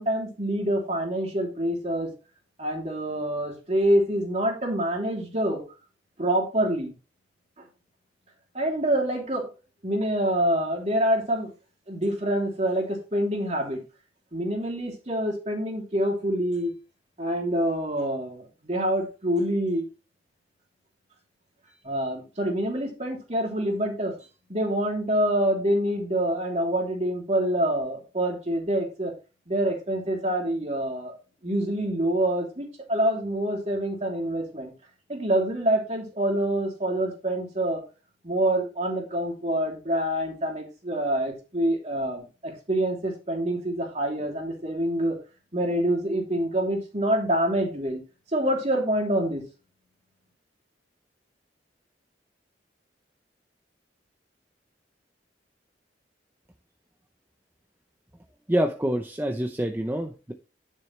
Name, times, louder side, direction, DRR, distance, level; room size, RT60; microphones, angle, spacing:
voice 1, 0.0-2.1 2.6-5.6 6.2-6.9 8.5-9.5 9.8-11.5 11.9-13.8 14.3-16.7 17.2-19.9 21.8-24.1 24.5-29.1 29.5-31.1 31.4-34.7 35.1-37.8 38.2-45.2 45.5-48.0 48.3-49.4, right 1 dB, 40° right, 2.9 m, -26 dB
voice 2, 58.5-60.3, right 1 dB, 10° right, 0.6 m, -26 dB
10.5 x 6.6 x 3.1 m
head